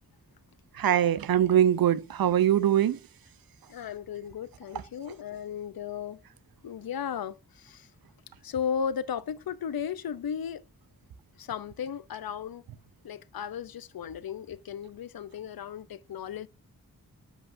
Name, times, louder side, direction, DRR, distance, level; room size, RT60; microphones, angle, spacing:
voice 1, 0.8-3.0, right 10 dB, 80° right, 0.7 m, -22 dB
voice 2, 3.7-6.2 6.6-7.9 8.4-10.6 11.4-12.6 13.0-16.5, left 8 dB, 90° left, 0.7 m, -35 dB
8.1 x 7.6 x 2.6 m
wide cardioid pair, 115°, 35 cm